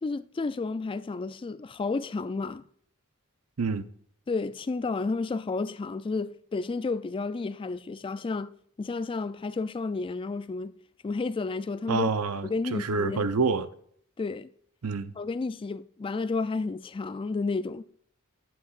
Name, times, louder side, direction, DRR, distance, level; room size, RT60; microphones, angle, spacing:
voice 1, 0.0-2.6 4.3-8.5 8.8-10.7 11.0-12.1 12.4-13.3 14.2-14.5 15.2-17.8, left 3 dB, 25° left, 0.3 m, -31 dB
voice 2, 11.9-13.7 14.8-15.1, right 4 dB, 80° right, 0.6 m, -27 dB
10.5 x 8.4 x 2.5 m
head